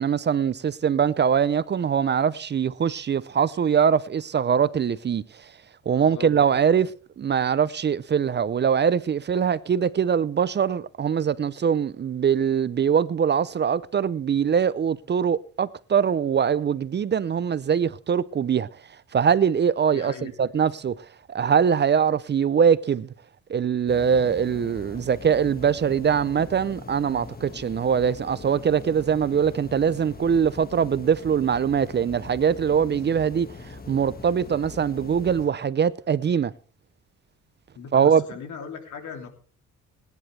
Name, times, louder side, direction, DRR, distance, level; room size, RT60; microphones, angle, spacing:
voice 1, 0.0-5.5 5.9-23.1 23.5-36.5 37.9-38.2, right 7 dB, 35° right, 0.6 m, -23 dB
voice 2, 5.8-6.8 19.9-20.3 37.7-39.3, left 6 dB, 75° left, 3.0 m, -39 dB
sound 1, 23.9-35.5, left 3 dB, 30° left, 1.8 m, -42 dB
21.0 x 10.5 x 3.3 m
cardioid pair, 90°, 30 cm